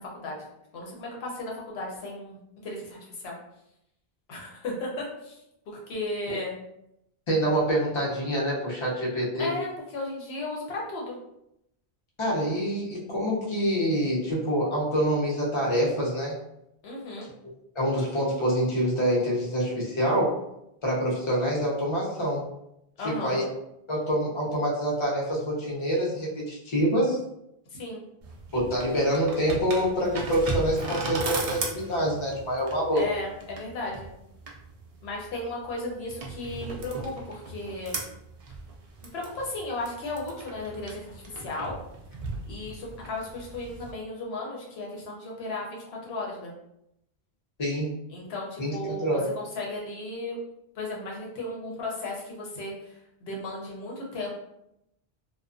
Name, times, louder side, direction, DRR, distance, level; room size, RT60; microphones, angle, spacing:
voice 1, 0.1-0.5 0.7-3.3 4.3-5.4 5.7-6.5 9.4-11.1 16.8-17.3 23.0-23.4 27.7-28.0 32.9-34.1 35.0-38.0 39.1-41.8 42.5-46.5 48.1-50.4 50.7-54.3, left 2 dB, 75° left, -2 dB, 1.0 m, -35 dB
voice 2, 7.3-9.5 12.2-16.4 17.8-20.4 20.8-22.5 23.0-23.5 23.9-27.2 28.5-33.0 47.6-47.9 48.6-49.3, equal, 35° left, -4 dB, 0.6 m, -26 dB
sound 1, 28.2-43.9, right 3 dB, 55° right, 0.4 m, -37 dB
2.3 x 2.1 x 2.4 m, 0.81 s
omnidirectional pair, 1.1 m